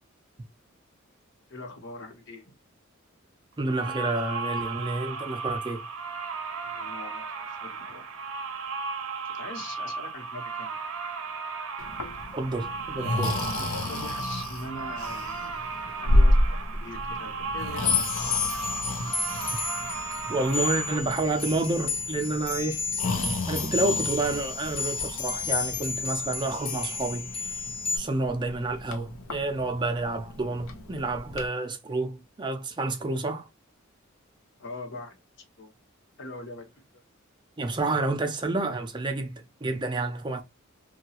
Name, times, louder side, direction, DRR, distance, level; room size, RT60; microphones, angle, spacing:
voice 1, 1.5-2.5 6.6-8.2 9.2-10.8 13.5-18.6 34.6-35.2 35.6-35.7 36.2-36.8, left 2 dB, 60° left, 1.0 m, -42 dB
voice 2, 3.6-5.8 12.3-13.4 20.3-22.8 23.5-27.6 27.9-33.5 37.6-40.4, right 2 dB, 20° right, 0.4 m, -29 dB
sound 1, 3.6-21.0, right 4 dB, 75° right, 0.5 m, -35 dB
Breathing, 11.8-31.5, left 1 dB, 80° left, 0.6 m, -31 dB
sound 2, 17.8-28.0, left 5 dB, 30° left, 0.8 m, -31 dB
2.8 x 2.3 x 2.8 m
head